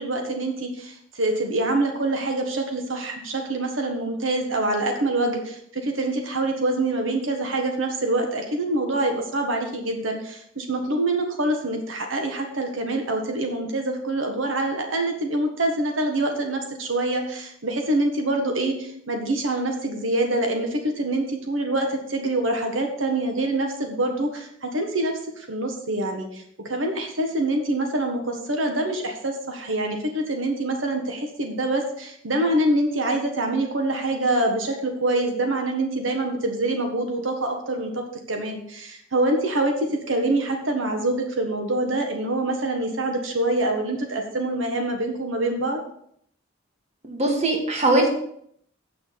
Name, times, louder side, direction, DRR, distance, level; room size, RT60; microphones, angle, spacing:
voice 1, 0.0-45.8, right 2 dB, 85° right, 4 dB, 1.5 m, -25 dB
voice 2, 47.0-48.1, right 2 dB, 35° right, 1 dB, 1.9 m, -21 dB
8.4 x 6.2 x 6.9 m, 0.68 s
head